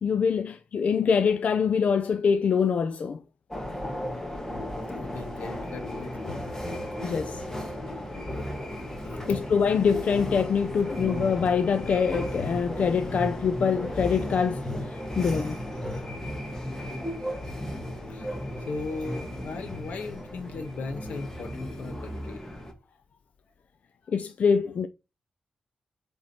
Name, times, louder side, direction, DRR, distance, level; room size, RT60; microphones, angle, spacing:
voice 1, 0.0-3.2 7.0-7.4 9.2-15.6 24.1-24.9, left 6 dB, 65° left, 0.6 m, -25 dB
sound 1, 3.5-22.7, left 1 dB, 20° left, 1.7 m, -35 dB
voice 2, 5.0-6.5 8.5-8.6 9.0-9.4 18.1-18.3 18.6-22.4 24.0-24.1, left 3 dB, 85° left, 1.3 m, -37 dB
8.0 x 3.6 x 4.4 m
wide cardioid pair, 100°, 3 cm